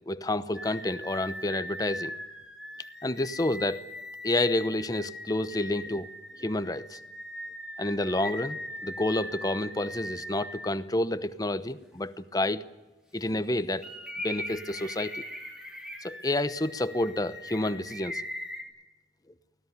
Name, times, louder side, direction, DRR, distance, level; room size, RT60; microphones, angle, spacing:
voice 1, 0.1-2.1 3.0-3.8 4.2-6.1 6.4-7.0 7.8-12.6 13.1-13.8 14.2-15.2 16.0-18.2, left 1 dB, 20° left, 13 dB, 0.9 m, -29 dB
sound 1, 0.5-10.7 11.2-11.3 13.8-18.6, left 1 dB, 5° right, 3.4 m, -40 dB
24.0 x 17.5 x 9.6 m, 1.1 s
head